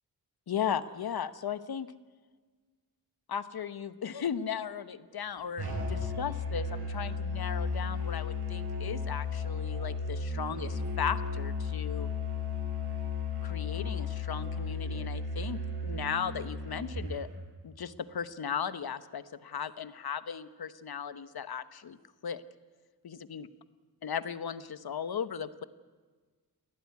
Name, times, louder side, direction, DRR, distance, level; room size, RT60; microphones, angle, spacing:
voice 1, 0.5-1.9 3.3-12.1 13.4-17.3 17.6-22.0 22.2-22.4 23.0-23.5 24.0-25.6, left 7 dB, 70° left, 13 dB, 1.1 m, -36 dB
Musical instrument, 5.6-17.3, left 4 dB, 75° right, 6.6 m, -34 dB
21.0 x 17.0 x 9.6 m, 1.4 s
wide cardioid pair, 95°, 39 cm